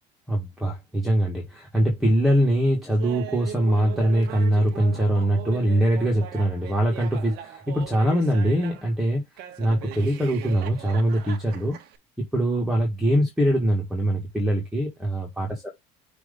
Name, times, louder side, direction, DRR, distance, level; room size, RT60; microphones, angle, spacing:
voice 1, 0.3-11.8 12.2-15.7, right 1 dB, ahead, 1.9 m, -23 dB
Laughter, 3.0-8.9 9.4-12.0, right 10 dB, 65° right, 1.4 m, -39 dB
6.3 x 3.2 x 5.3 m
cardioid pair, 140°, 18 cm